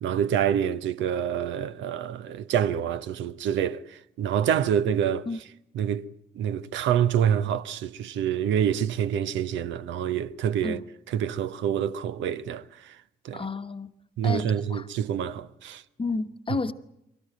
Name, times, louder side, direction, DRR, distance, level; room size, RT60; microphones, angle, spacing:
voice 1, 0.0-5.3 5.7-6.1 6.3-10.8 11.1-13.0 13.2-13.4 14.2-15.8 16.5-16.6, right 9 dB, 65° right, 0.8 m, -27 dB
voice 2, 13.3-13.9 14.2-14.4 14.7-14.8 16.0-16.7, left 3 dB, 25° left, 1.2 m, -30 dB
23.5 x 18.0 x 9.0 m
figure-of-eight pair, 45°, 21 cm